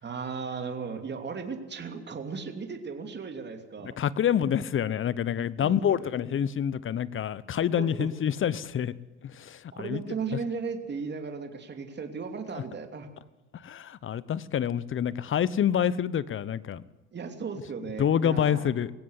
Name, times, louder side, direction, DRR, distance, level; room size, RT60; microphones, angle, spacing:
voice 1, 0.0-3.9 5.6-6.1 7.7-8.1 9.7-13.1 17.1-18.7, right 5 dB, 30° right, 5 dB, 3.0 m, -36 dB
voice 2, 3.8-8.9 9.2-10.0 12.5-12.6 13.5-16.8 18.0-18.9, left 9 dB, 35° left, 19 dB, 0.9 m, -27 dB
20.5 x 16.0 x 8.4 m, 1.1 s
hypercardioid pair, 70°, 35 cm